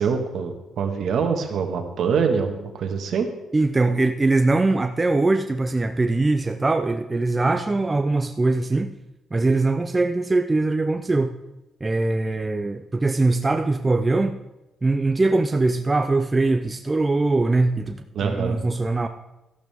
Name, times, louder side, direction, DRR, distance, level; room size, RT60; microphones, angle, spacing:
voice 1, 0.0-3.3 18.1-18.6, right 6 dB, 60° right, 5 dB, 1.5 m, -24 dB
voice 2, 3.5-8.9 9.3-11.4 11.8-14.4 14.8-19.1, right 2 dB, 20° right, 7 dB, 0.4 m, -22 dB
13.0 x 12.0 x 3.5 m, 0.96 s
cardioid pair, 145°, 0 cm